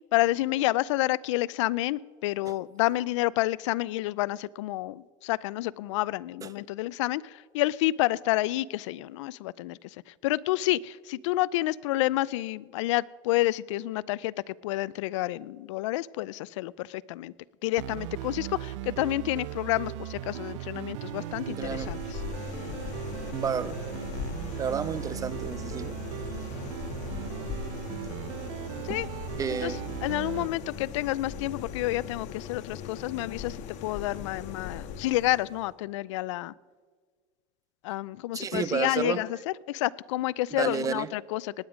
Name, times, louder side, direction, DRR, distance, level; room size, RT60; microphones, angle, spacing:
voice 1, 0.1-9.8 10.2-17.3 17.6-22.2 28.8-29.1 29.5-29.7 30.0-36.5 37.8-41.5, left 17 dB, 90° left, 22 dB, 0.4 m, -29 dB
sound 1, 17.8-30.5, right 13 dB, 85° right, 0.6 m, -38 dB
sound 2, 21.1-35.7, left 7 dB, 50° left, 1.3 m, -39 dB
voice 2, 21.5-22.0 23.3-23.8 24.6-26.0 28.9-29.0 29.4-29.8 38.3-39.2 40.5-41.1, right 7 dB, 25° right, 17 dB, 0.4 m, -31 dB
19.5 x 9.6 x 5.0 m, 1.5 s
supercardioid pair, 130°, 15 cm